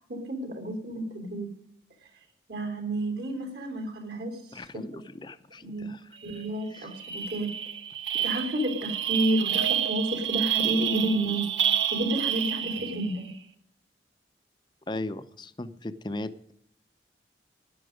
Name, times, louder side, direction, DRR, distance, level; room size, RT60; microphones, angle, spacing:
voice 1, 0.0-1.5 2.5-4.6 4.9-5.0 5.6-7.5 8.2-11.4 11.9-13.3, right 1 dB, 65° right, 5 dB, 3.3 m, -30 dB
voice 2, 4.5-6.0 6.7-6.9 12.8-13.0 14.9-16.5, left 2 dB, 25° left, 12 dB, 0.6 m, -38 dB
sound 1, 6.3-6.4 6.7-13.2, right 9 dB, 85° right, 1.3 m, -29 dB
13.0 x 10.5 x 5.1 m, 0.68 s
head